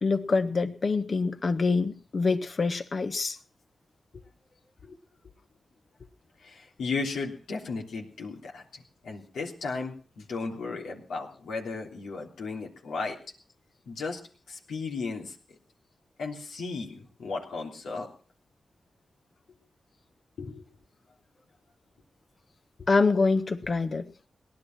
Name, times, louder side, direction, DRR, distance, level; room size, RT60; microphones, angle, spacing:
voice 1, 0.0-3.4 4.9-5.0 22.9-24.1, left 4 dB, 55° left, 1.5 m, -25 dB
voice 2, 6.4-13.2 13.9-14.2 14.5-15.3 16.2-18.1 20.4-20.6, left 4 dB, 90° left, 3.3 m, -35 dB
18.5 x 10.5 x 6.1 m
cardioid pair, 50°, 0 cm